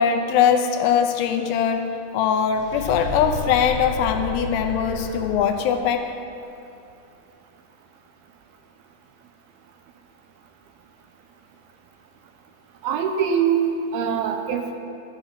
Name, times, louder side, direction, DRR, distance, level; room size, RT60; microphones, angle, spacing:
voice 1, 0.0-1.8 2.1-6.0, left 8 dB, 80° left, 5 dB, 2.7 m, -21 dB
sound 1, 2.5-5.6, left 1 dB, ahead, 2.5 m, -31 dB
voice 2, 12.8-14.7, right 7 dB, 80° right, 5 dB, 2.3 m, -23 dB
12.0 x 9.2 x 5.8 m, 2.6 s
omnidirectional pair, 5.0 m